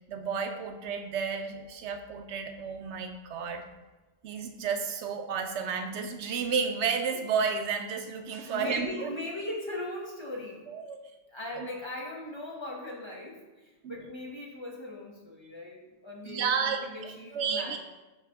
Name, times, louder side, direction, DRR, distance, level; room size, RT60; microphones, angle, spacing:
voice 1, 0.1-3.7 4.2-9.1 10.7-11.0 11.6-11.7 13.8-14.0 16.3-17.8, right 6 dB, 80° right, 6 dB, 0.9 m, -32 dB
voice 2, 8.4-10.7 11.3-17.8, left 1 dB, 25° left, -3 dB, 0.9 m, -39 dB
8.9 x 3.3 x 3.5 m, 1.1 s
omnidirectional pair, 1.2 m